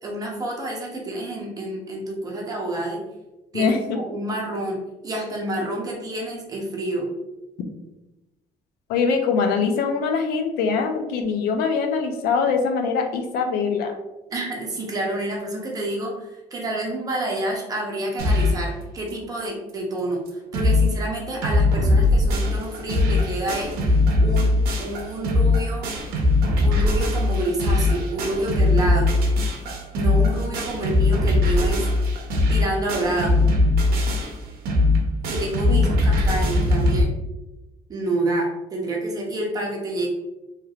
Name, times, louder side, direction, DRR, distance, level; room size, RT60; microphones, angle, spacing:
voice 1, 0.0-3.0 3.5-4.8 5.0-7.1 14.3-23.7 24.2-24.5 24.8-25.9 26.6-29.1 29.9-31.9 32.5-33.4 35.3-37.1 37.9-40.1, right 1 dB, 25° right, -1 dB, 0.6 m, -28 dB
voice 2, 8.9-13.9 35.7-35.8, left 5 dB, 80° left, 5 dB, 0.5 m, -23 dB
sound 1, 18.2-18.7 19.1-19.2 19.4-19.5 20.0-20.1 20.3-20.9 21.2-37.0, left 2 dB, 90° right, 0.7 m, -20 dB
3.2 x 3.0 x 2.3 m, 1.0 s
cardioid pair, 175°, 15 cm